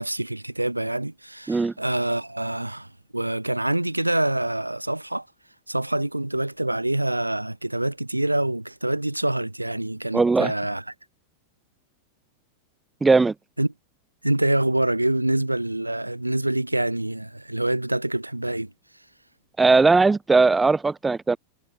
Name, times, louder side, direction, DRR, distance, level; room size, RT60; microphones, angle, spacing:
voice 1, 0.0-5.3 5.7-10.8 13.6-13.7 14.2-18.7, right 1 dB, 85° right, 3.2 m, -26 dB
voice 2, 10.1-10.5 13.0-13.3 19.6-21.4, right 3 dB, 10° right, 6.4 m, -18 dB
figure-of-eight pair, 90°, 0 cm